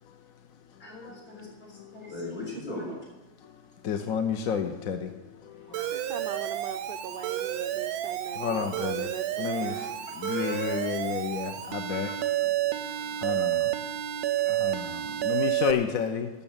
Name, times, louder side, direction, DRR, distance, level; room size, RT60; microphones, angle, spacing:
voice 1, 0.8-1.5 1.9-2.9 5.7-6.2 9.6-9.9 10.2-10.8 11.9-12.1 13.0-13.1 14.5-14.8, left 2 dB, 85° left, -3 dB, 6.1 m, -40 dB
voice 2, 3.8-5.1 8.4-9.1 9.4-9.9 10.2-12.1 13.2-13.7 14.5-16.3, left 7 dB, 65° left, 6 dB, 1.2 m, -30 dB
Alarm, 5.7-15.7, right 13 dB, 90° right, 1.2 m, -30 dB
voice 3, 5.9-9.9, right 7 dB, 70° right, 9 dB, 0.5 m, -40 dB
12.5 x 6.8 x 8.6 m, 1.2 s
omnidirectional pair, 1.6 m